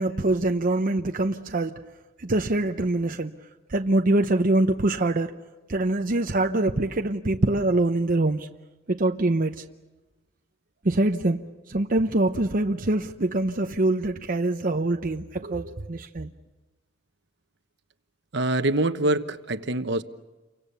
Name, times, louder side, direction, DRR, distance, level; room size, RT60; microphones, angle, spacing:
voice 1, 0.0-1.8 2.2-3.3 3.7-5.3 5.7-8.5 8.9-9.6 10.8-11.4 11.7-16.3, right 2 dB, 45° right, 0.8 m, -24 dB
voice 2, 15.4-15.7 18.3-20.0, right 2 dB, 65° right, 1.1 m, -25 dB
29.5 x 24.5 x 6.9 m
head